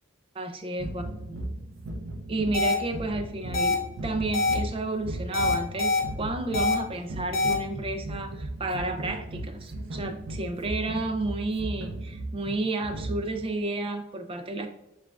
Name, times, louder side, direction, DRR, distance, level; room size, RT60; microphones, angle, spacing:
voice 1, 0.3-1.0 1.3-1.4 2.3-14.7, right 2 dB, 30° right, 6 dB, 0.4 m, -31 dB
sound 1, 0.8-13.5, right 1 dB, 80° right, 0.5 m, -36 dB
sound 2, 2.5-2.7 3.5-3.7 4.3-4.5 5.3-6.0 6.5-6.7 7.3-7.5, left 3 dB, 50° left, 0.8 m, -24 dB
6.8 x 2.4 x 2.3 m, 0.90 s
head